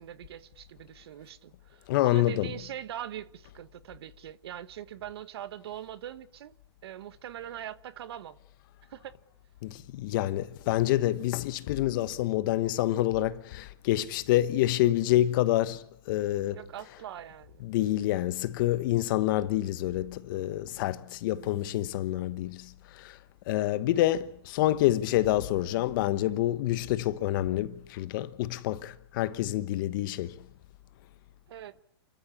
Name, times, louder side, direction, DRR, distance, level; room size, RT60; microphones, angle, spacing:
voice 1, 0.0-6.5 6.8-8.4 8.9-9.2 16.5-17.6 31.5-31.8, right 11 dB, 65° right, 1.2 m, -42 dB
voice 2, 1.9-2.5 9.6-16.6 17.6-23.2 23.5-30.4, left 14 dB, 50° left, 1.2 m, -27 dB
29.0 x 13.5 x 8.6 m
hypercardioid pair, 140°, 14 cm